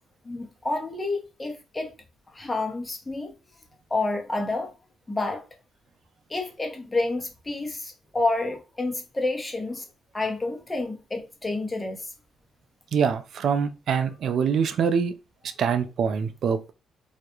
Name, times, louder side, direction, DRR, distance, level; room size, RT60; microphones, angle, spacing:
voice 1, 0.2-1.9 2.3-3.3 3.9-4.7 5.1-5.4 6.3-9.9 10.1-12.1, left 2 dB, 20° left, 0.7 m, -29 dB
voice 2, 12.9-15.1 15.6-16.7, right 6 dB, 65° right, 0.3 m, -24 dB
2.3 x 2.1 x 2.9 m
cardioid pair, 90°, 0 cm